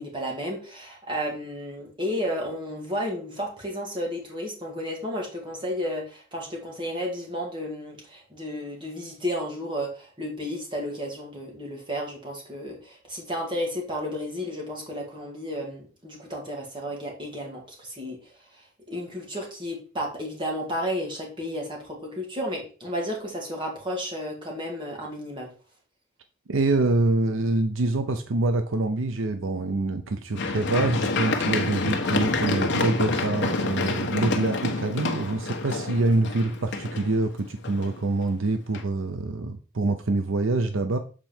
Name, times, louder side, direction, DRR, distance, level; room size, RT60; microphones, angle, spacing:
voice 1, 0.0-18.2 18.5-25.5, equal, 25° right, 0 dB, 2.2 m, -32 dB
voice 2, 26.5-41.0, right 2 dB, 70° right, 8 dB, 0.6 m, -25 dB
Run, 30.4-38.3 38.7-38.8, left 3 dB, 60° left, 1.1 m, -27 dB
7.5 x 4.5 x 4.4 m, 0.36 s
head